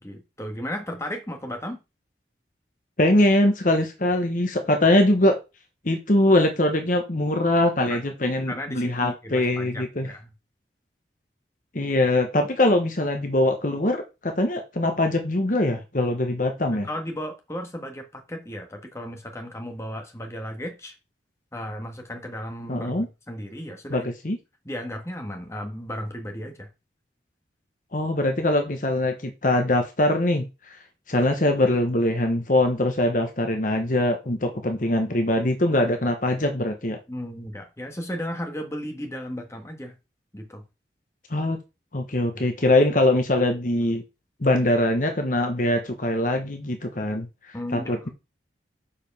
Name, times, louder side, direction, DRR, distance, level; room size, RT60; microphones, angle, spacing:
voice 1, 0.0-1.8 7.8-8.0 8.5-10.3 16.8-20.9 21.5-24.1 24.6-26.7 37.1-40.0 40.3-40.6 47.5-48.0, equal, 15° left, 1.6 m, -35 dB
voice 2, 3.0-5.4 5.8-10.1 11.7-16.9 22.7-23.1 23.9-24.4 27.9-30.8 31.1-37.0 41.3-41.6 41.9-44.0 44.4-47.3 47.7-48.1, left 1 dB, 45° left, 1.2 m, -22 dB
6.9 x 5.0 x 5.5 m
head